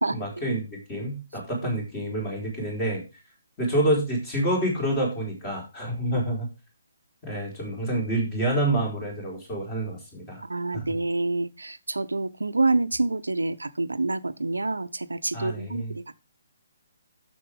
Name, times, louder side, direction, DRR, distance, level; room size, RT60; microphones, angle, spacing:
voice 1, 0.1-3.0 3.6-6.5 7.2-10.4 10.7-10.9 15.3-15.9, right 1 dB, 20° left, 4.4 m, -28 dB
voice 2, 10.4-16.2, right 2 dB, 70° right, 0.6 m, -27 dB
9.8 x 6.9 x 3.6 m
figure-of-eight pair, 135°, 0 cm